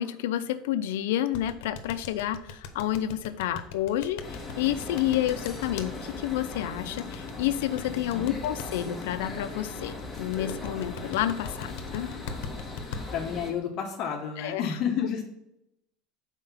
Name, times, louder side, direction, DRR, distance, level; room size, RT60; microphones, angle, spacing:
voice 1, 0.0-12.1 14.4-14.7, left 12 dB, 85° left, 12 dB, 0.6 m, -30 dB
sound 1, 1.3-5.9 7.0-8.7 10.2-13.0, left 6 dB, 70° left, 0.9 m, -39 dB
sound 2, 4.2-13.5, left 3 dB, 10° left, 1.4 m, -39 dB
voice 2, 13.1-15.2, left 7 dB, 45° left, 2 dB, 0.9 m, -30 dB
5.6 x 4.5 x 5.7 m, 0.84 s
supercardioid pair, 140°, 0 cm